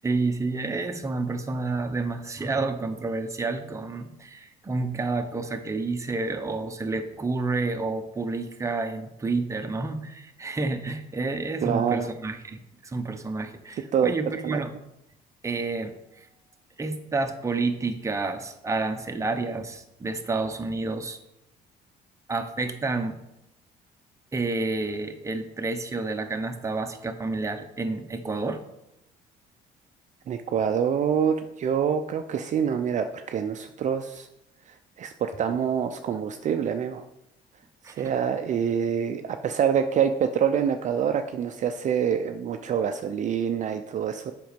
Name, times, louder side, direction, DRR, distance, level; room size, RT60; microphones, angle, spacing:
voice 1, 0.0-14.7 15.4-16.3 16.8-21.2 22.3-23.2 24.3-28.6 37.8-38.1, right 3 dB, 20° right, 6 dB, 0.8 m, -29 dB
voice 2, 11.6-12.1 13.9-14.1 14.4-14.6 30.3-34.3 35.0-37.0 37.9-44.3, right 8 dB, 45° right, 7 dB, 0.5 m, -26 dB
7.7 x 5.2 x 5.2 m, 0.86 s
cardioid pair, 110°, 17 cm